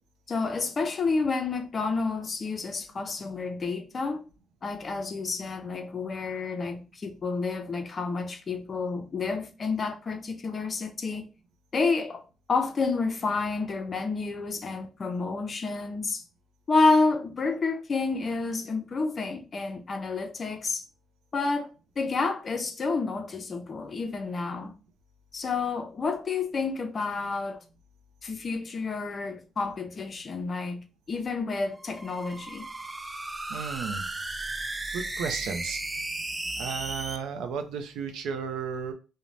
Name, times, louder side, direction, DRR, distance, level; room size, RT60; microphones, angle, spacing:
voice 1, 0.3-4.2 4.6-11.3 11.7-12.2 12.5-16.2 16.7-20.8 21.3-21.7 22.0-24.7 25.3-27.6 28.2-32.7, left 4 dB, 40° left, 0.5 m, -29 dB
sound 1, 31.7-37.2, right 2 dB, 20° right, 0.3 m, -35 dB
voice 2, 33.5-34.1 34.9-35.8 36.6-38.9, right 6 dB, 85° right, 0.4 m, -33 dB
2.6 x 2.0 x 3.1 m
cardioid pair, 90°, 0 cm